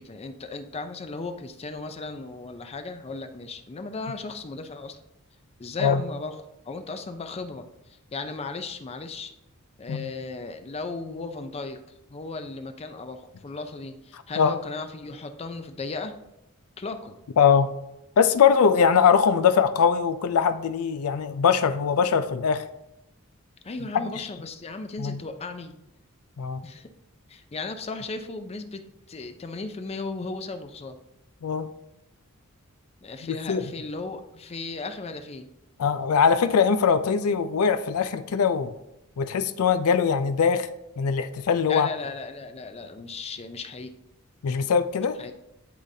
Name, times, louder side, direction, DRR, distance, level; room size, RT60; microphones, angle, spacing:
voice 1, 0.0-5.0 5.6-7.7 8.1-9.3 9.8-11.8 12.1-16.1 16.8-17.1 23.6-25.7 26.6-26.9 27.3-31.0 33.0-35.5 41.7-43.9 45.2-45.3, left 3 dB, 30° left, 8 dB, 0.4 m, -36 dB
voice 2, 17.4-17.7 18.2-22.6 23.9-24.2 25.0-25.2 26.4-26.6 31.4-31.7 33.2-33.7 35.8-38.7 39.2-40.7 41.0-41.9 44.4-45.2, left 6 dB, 85° left, 11 dB, 0.4 m, -22 dB
11.5 x 4.0 x 2.7 m, 0.87 s
head